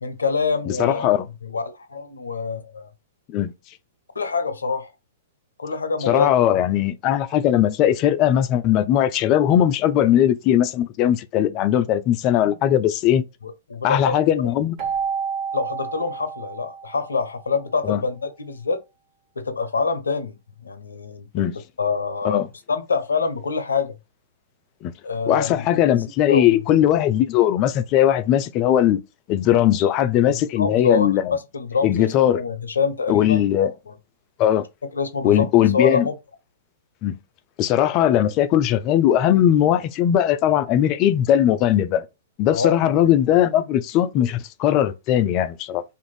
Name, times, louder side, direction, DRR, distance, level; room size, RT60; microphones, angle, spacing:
voice 1, 0.0-1.1 1.4-2.9 4.1-4.9 5.6-6.6 12.4-12.6 13.4-14.1 14.4-14.5 15.5-18.8 19.4-21.3 21.8-24.0 25.0-25.7 26.3-26.6 30.3-33.9 34.9-35.5 35.7-36.1 42.5-43.1, left 4 dB, 85° left, 0.6 m, -26 dB
voice 2, 0.7-1.3 3.3-3.5 6.1-13.2 13.8-14.8 17.8-18.0 21.3-21.5 22.2-22.5 24.8-24.9 25.3-29.0 29.3-31.3 31.8-32.4 33.1-33.7 34.4-34.7 35.2-36.1 37.0-37.2 37.6-42.0 42.4-45.8, left 11 dB, 40° left, 0.4 m, -19 dB
Keyboard (musical), 14.8-17.4, right 6 dB, 40° right, 1.0 m, -30 dB
2.5 x 2.5 x 3.1 m
hypercardioid pair, 115°, 0 cm